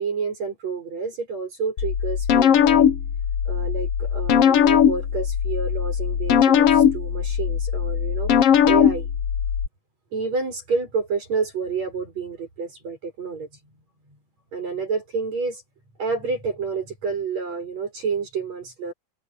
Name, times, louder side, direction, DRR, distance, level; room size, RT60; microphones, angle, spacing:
voice 1, 0.0-2.8 3.5-8.3 8.7-9.1 10.1-13.5 14.5-15.6 16.0-18.9, right 4 dB, 45° right, 8.5 m, -29 dB
sound 1, 1.8-9.7, left 8 dB, 70° left, 1.4 m, -19 dB
omnidirectional pair, 4.3 m